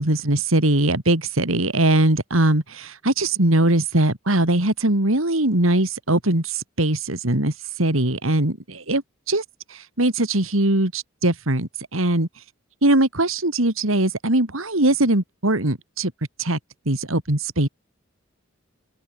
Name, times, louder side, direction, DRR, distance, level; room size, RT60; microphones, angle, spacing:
voice 1, 0.0-7.5 7.8-9.0 9.3-9.4 10.0-12.3 12.8-16.1 16.4-16.6 16.9-17.7, right 1 dB, 90° right, 3.4 m, -21 dB
head